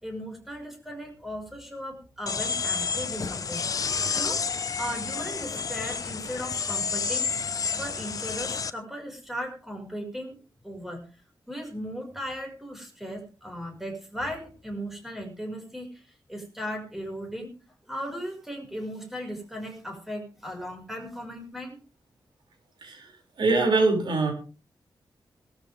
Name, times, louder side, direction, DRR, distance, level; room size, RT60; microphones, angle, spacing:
voice 1, 0.0-3.7 4.1-4.4 4.8-7.3 7.8-10.4 10.6-11.2 11.5-17.5 17.9-21.8, equal, 5° right, 2 dB, 5.8 m, -37 dB
sound 1, 2.3-8.7, left 5 dB, 45° left, 0.9 m, -30 dB
voice 2, 22.8-23.1 23.4-24.3, right 3 dB, 65° right, 3 dB, 6.4 m, -23 dB
19.0 x 13.5 x 3.6 m, 0.35 s
wide cardioid pair, 170°, 8 cm